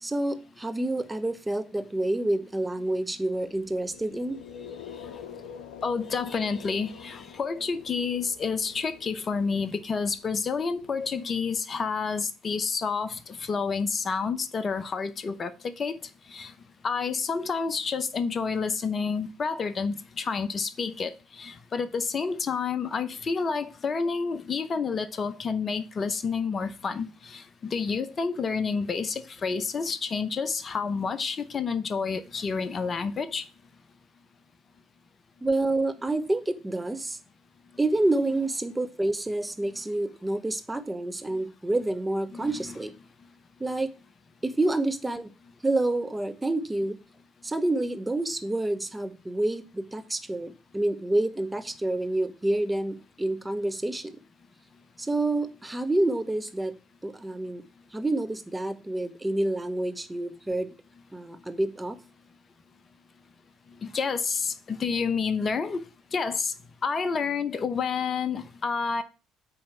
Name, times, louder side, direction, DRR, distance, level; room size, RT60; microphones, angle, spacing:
voice 1, 0.0-4.4 35.4-37.2 37.8-42.9 43.6-43.9 44.4-45.3 45.6-47.0 47.4-54.2 55.0-56.8 57.0-57.6 57.9-60.7 61.1-62.0, right 2 dB, 15° right, 1.0 m, -28 dB
sound 1, 3.3-11.4, left 7 dB, 80° left, 0.6 m, -46 dB
voice 2, 5.8-16.0 16.3-16.5 16.8-33.5 42.3-42.7 63.8-65.8 66.1-66.5 66.8-69.0, left 5 dB, 40° left, 0.8 m, -29 dB
8.6 x 3.2 x 5.9 m
hypercardioid pair, 55°, 0 cm